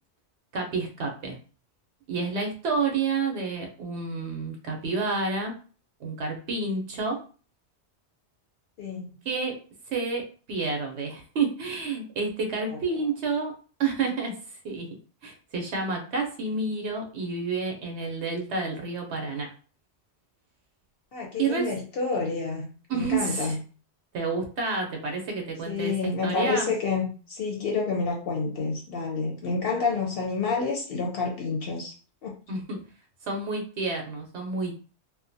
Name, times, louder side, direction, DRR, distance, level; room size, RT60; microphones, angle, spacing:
voice 1, 0.5-1.4 2.1-5.5 6.0-7.2 9.2-9.6 9.9-13.5 13.8-14.9 15.2-19.5 21.4-21.6 22.9-23.6 24.1-26.7 32.5-32.8 33.2-34.8, right 4 dB, 75° right, 2 dB, 0.9 m, -29 dB
voice 2, 8.8-9.2 12.7-12.8 21.1-23.6 25.7-31.9 32.2-32.3, left 4 dB, 65° left, 0 dB, 0.7 m, -29 dB
2.5 x 2.1 x 2.6 m, 0.38 s
omnidirectional pair, 1.2 m